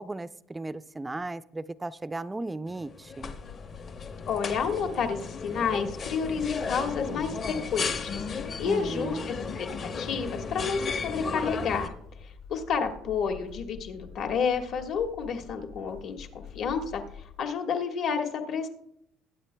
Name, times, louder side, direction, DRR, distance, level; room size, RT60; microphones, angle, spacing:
voice 1, 0.0-3.4 8.6-9.3, right 2 dB, 10° right, 15 dB, 0.3 m, -36 dB
sound 1, 2.7-11.9, left 5 dB, 40° left, 0.8 m, -35 dB
sound 2, 3.2-17.4, left 7 dB, 80° left, 3.9 m, -47 dB
voice 2, 4.3-8.2 8.6-9.4 9.8-11.9 12.2-17.0 17.4-18.7, left 6 dB, 55° left, 5 dB, 1.4 m, -30 dB
20.5 x 8.8 x 2.2 m, 0.74 s
cardioid pair, 135°, 0 cm